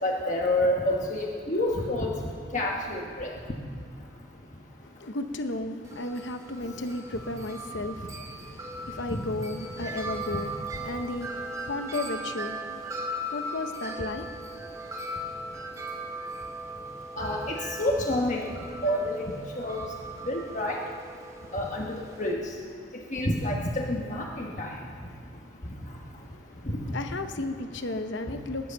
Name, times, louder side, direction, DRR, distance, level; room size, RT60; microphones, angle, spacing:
voice 1, 0.0-2.1 2.5-3.3 9.1-9.2 17.2-18.4 18.8-19.1 19.6-19.8 20.3-20.8 21.5-22.4 23.1-24.7, left 1 dB, 35° left, 1.3 m, -28 dB
voice 2, 5.0-13.0 13.3-14.4 26.9-28.7, left 2 dB, 65° left, 0.9 m, -34 dB
Wind chime, 5.8-22.3, right 1 dB, 15° right, 2.1 m, -38 dB
19.0 x 10.5 x 6.9 m
head